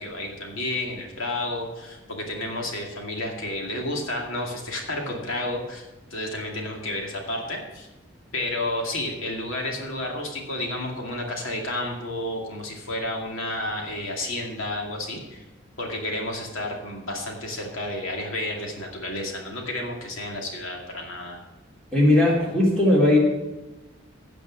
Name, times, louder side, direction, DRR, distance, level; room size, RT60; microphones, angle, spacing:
voice 1, 0.0-7.9 8.3-15.4 15.8-21.4, left 1 dB, 75° left, 0 dB, 2.4 m, -31 dB
voice 2, 21.9-23.2, left 1 dB, 5° left, -5 dB, 3.1 m, -18 dB
15.5 x 5.2 x 7.2 m, 1.1 s
head